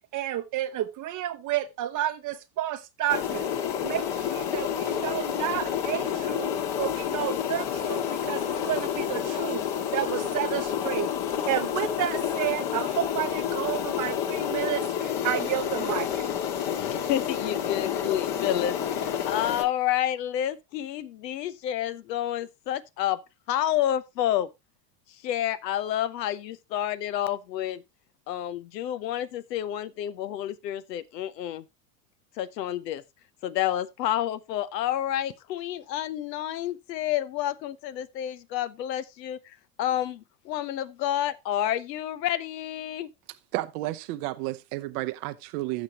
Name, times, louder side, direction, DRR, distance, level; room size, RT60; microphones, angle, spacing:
voice 1, 0.1-3.5 3.8-6.5 6.8-9.6 9.9-11.1 11.5-16.3, right 12 dB, 40° right, 0.8 m, -31 dB
sound 1, 3.1-19.6, left 9 dB, 55° left, 2.0 m, -29 dB
voice 2, 16.7-23.2 23.5-24.5 25.2-27.8 28.3-31.7 32.4-33.0 33.4-43.1, left 12 dB, 80° left, 1.0 m, -29 dB
voice 3, 43.5-45.8, right 18 dB, 70° right, 0.8 m, -32 dB
15.5 x 6.3 x 2.9 m
hypercardioid pair, 95°, 49 cm